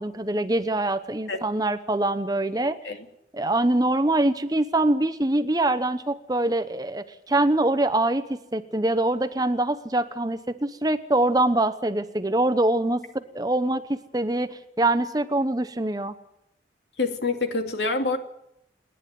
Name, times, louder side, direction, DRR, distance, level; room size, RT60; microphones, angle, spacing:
voice 1, 0.0-2.8 3.3-16.1, right 2 dB, 20° right, 11 dB, 0.9 m, -24 dB
voice 2, 17.0-18.2, left 3 dB, 80° left, 5 dB, 2.7 m, -26 dB
28.0 x 11.0 x 9.3 m, 0.81 s
head